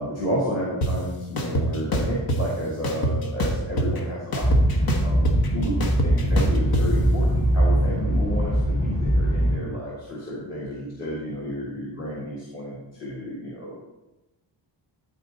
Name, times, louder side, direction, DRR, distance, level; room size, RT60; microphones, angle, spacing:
voice 1, 0.0-4.5 5.0-13.7, equal, 35° left, -6 dB, 1.8 m, -31 dB
sound 1, 0.8-0.9 1.4-2.4 2.8-4.0 4.3-6.8, equal, 50° left, 1.2 m, -24 dB
sound 2, 4.4-9.6, equal, 15° left, 1.0 m, -21 dB
12.0 x 4.2 x 4.0 m, 1.0 s
wide cardioid pair, 135°, 46 cm